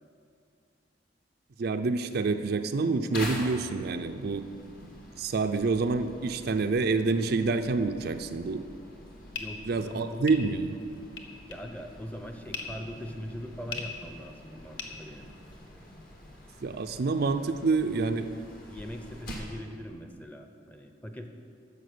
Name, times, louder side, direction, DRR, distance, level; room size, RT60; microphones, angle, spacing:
voice 1, 1.6-4.4 5.2-8.7 9.7-10.8 16.6-18.3, right 3 dB, 60° right, 8 dB, 0.5 m, -27 dB
sound 1, 3.1-19.6, left 1 dB, 55° left, 1.9 m, -46 dB
sound 2, 9.3-15.7, left 6 dB, 80° left, 1.1 m, -42 dB
voice 2, 9.4-10.3 11.5-15.3 18.7-21.3, equal, 10° left, 5 dB, 0.7 m, -41 dB
10.5 x 7.0 x 6.8 m, 2.4 s
head